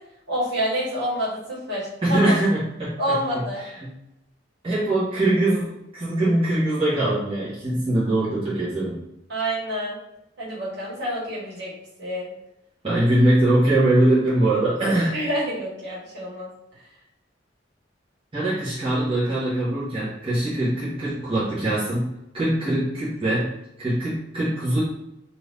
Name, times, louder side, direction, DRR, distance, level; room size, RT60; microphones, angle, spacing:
voice 1, 0.3-2.4 3.0-3.6 9.3-10.0 10.4-11.7 12.0-12.3 15.1-16.5, equal, 65° right, -7 dB, 1.5 m, -27 dB
voice 2, 2.1-3.4 4.6-9.0 12.8-15.1 18.3-24.8, right 1 dB, 30° right, -10 dB, 1.1 m, -22 dB
2.7 x 2.6 x 3.4 m, 0.85 s
head